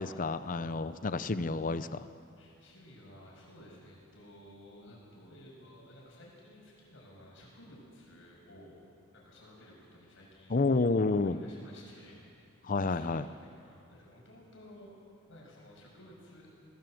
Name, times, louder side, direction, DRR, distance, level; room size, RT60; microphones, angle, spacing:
voice 1, 0.0-2.0 10.5-11.4 12.6-13.3, left 3 dB, 40° left, 13 dB, 0.6 m, -30 dB
voice 2, 2.4-8.8 9.1-10.5 11.1-12.2 12.7-15.0 15.3-16.5, left 1 dB, 65° left, -3 dB, 7.0 m, -55 dB
20.5 x 17.0 x 7.9 m, 2.5 s
head